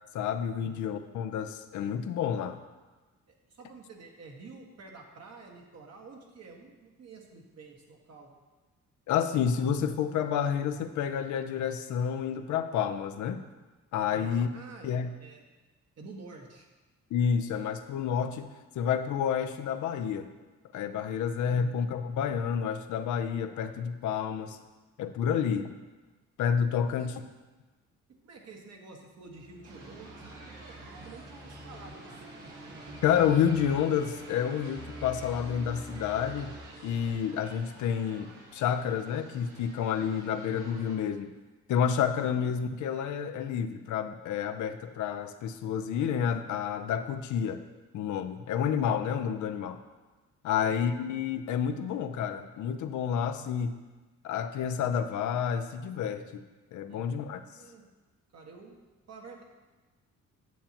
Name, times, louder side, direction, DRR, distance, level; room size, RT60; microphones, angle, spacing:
voice 1, 0.1-2.6 9.1-13.4 13.9-14.5 14.8-15.1 17.1-18.5 18.7-20.3 20.7-24.6 25.0-25.7 26.4-27.2 33.0-36.5 36.8-41.3 41.7-47.6 47.9-49.8 50.4-53.8 54.2-56.4 56.7-57.4, left 8 dB, 75° left, 8 dB, 0.6 m, -29 dB
voice 2, 3.5-8.3 14.1-15.5 16.0-16.7 21.4-21.9 25.3-25.7 26.9-27.1 28.2-32.2 48.6-48.9 50.6-50.8 56.9-57.8 58.3-58.8 59.1-59.4, right 3 dB, 55° right, 0 dB, 1.5 m, -49 dB
sound 1, 29.3-37.6, equal, 40° right, 1.5 m, -46 dB
sound 2, 29.6-41.0, right 2 dB, 75° right, 1.6 m, -51 dB
9.1 x 7.3 x 2.9 m, 1.2 s
cardioid pair, 90°, 30 cm